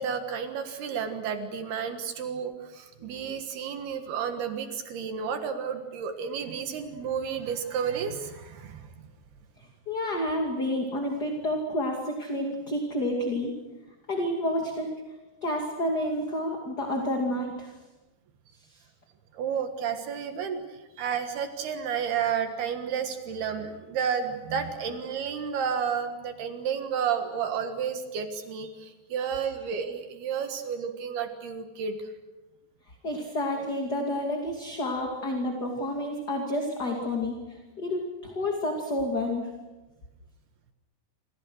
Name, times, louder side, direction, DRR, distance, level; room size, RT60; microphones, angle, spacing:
voice 1, 0.0-9.1 19.3-32.1, right 7 dB, 70° right, 7 dB, 3.5 m, -31 dB
voice 2, 9.9-13.6 14.1-14.9 15.4-17.7 33.0-39.5, left 1 dB, 30° left, 2 dB, 2.4 m, -29 dB
28.0 x 28.0 x 6.4 m, 1.1 s
omnidirectional pair, 4.8 m